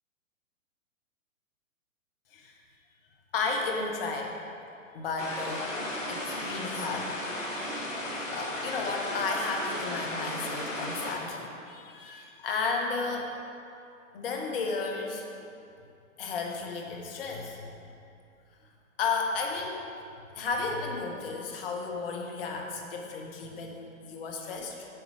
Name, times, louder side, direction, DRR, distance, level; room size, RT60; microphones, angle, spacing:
voice 1, 3.3-4.3 4.9-5.7 6.1-7.1 8.3-13.3 14.1-15.2 16.2-17.7 19.0-19.8 20.3-24.9, left 4 dB, 45° left, 1 dB, 1.3 m, -33 dB
sound 1, 5.2-11.2, left 1 dB, 70° left, 1.8 m, -35 dB
8.0 x 7.0 x 5.0 m, 2.5 s
figure-of-eight pair, 115°, 40 cm